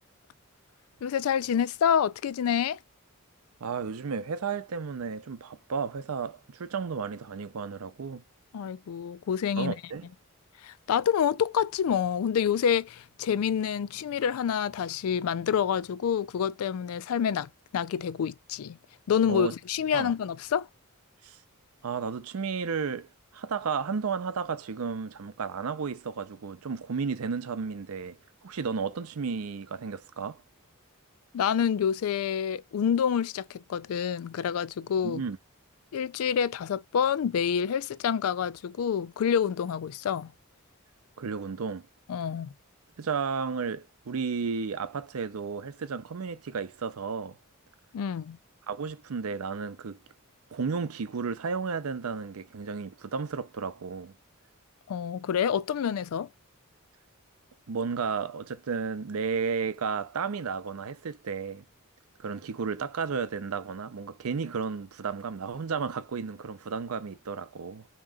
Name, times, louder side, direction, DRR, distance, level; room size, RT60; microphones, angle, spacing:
voice 1, 1.0-2.8 8.5-9.7 10.6-18.8 19.1-20.7 31.3-35.2 35.9-40.3 42.1-42.5 47.9-48.4 54.9-56.3, left 8 dB, 75° left, 0.3 m, -27 dB
voice 2, 3.6-8.2 9.6-10.1 19.3-19.5 19.9-20.1 21.2-21.4 21.8-23.1 23.3-28.2 28.4-30.4 35.0-35.4 41.2-41.9 43.0-47.4 48.7-50.0 50.5-54.1 57.7-61.6 62.2-67.9, right 5 dB, 85° right, 0.5 m, -33 dB
3.7 x 2.9 x 3.5 m
head